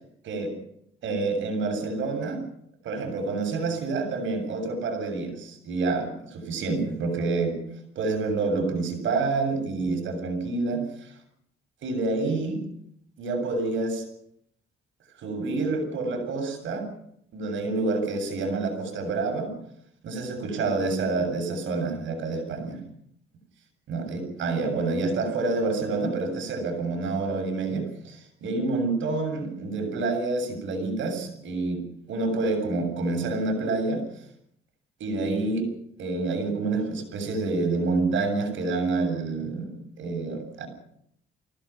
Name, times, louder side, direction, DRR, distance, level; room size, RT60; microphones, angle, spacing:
voice 1, 1.0-2.4 2.8-7.6 8.0-11.1 11.8-12.6 13.2-14.0 15.2-16.9 17.3-19.5 20.0-22.8 23.9-34.0 35.0-35.7 36.0-40.7, right 3 dB, 75° right, 5 dB, 7.5 m, -28 dB
25.0 x 17.0 x 6.0 m, 0.71 s
cardioid pair, 90°, 20 cm